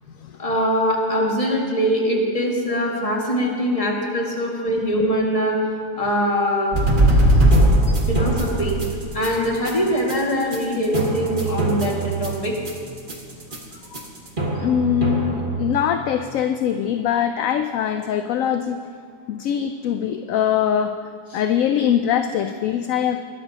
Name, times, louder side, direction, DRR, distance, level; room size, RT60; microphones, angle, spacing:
voice 1, 0.4-5.6 6.0-6.9 8.1-8.8 9.1-12.6, equal, 20° left, -2 dB, 2.0 m, -22 dB
sound 1, 6.7-15.9, right 1 dB, 30° right, 1.8 m, -20 dB
voice 2, 14.5-18.8 19.3-21.0 21.3-23.2, left 9 dB, 70° left, 7 dB, 0.8 m, -22 dB
21.5 x 12.5 x 2.9 m, 2.2 s
omnidirectional pair, 1.7 m